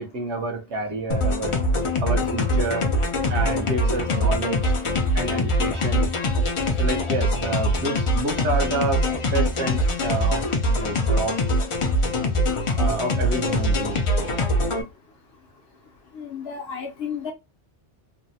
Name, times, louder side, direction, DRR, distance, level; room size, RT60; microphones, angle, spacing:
voice 1, 0.0-1.6 2.0-2.9 3.3-4.7 5.1-6.1 6.8-10.4 10.8-11.4 12.8-14.0, right 2 dB, 70° right, 1.1 m, -28 dB
sound 1, 1.1-14.8, left 1 dB, 50° left, 0.4 m, -23 dB
voice 2, 16.1-17.3, left 6 dB, 65° left, 0.8 m, -32 dB
3.1 x 2.0 x 2.7 m
omnidirectional pair, 1.2 m